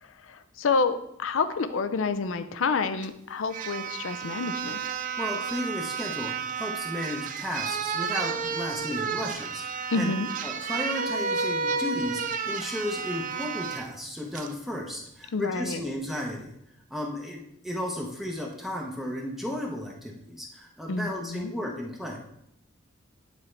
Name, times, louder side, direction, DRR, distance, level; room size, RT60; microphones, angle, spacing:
voice 1, 0.0-4.8 9.9-10.3 15.3-15.8 20.9-21.5, left 4 dB, 80° left, 11 dB, 0.5 m, -28 dB
sound 1, 3.0-3.1 3.5-13.9 14.3-14.5, right 6 dB, 40° right, 0.4 m, -32 dB
voice 2, 5.2-10.1 10.4-16.6 16.9-22.2, left 1 dB, ahead, -1 dB, 0.7 m, -34 dB
9.8 x 4.3 x 3.2 m, 0.75 s
head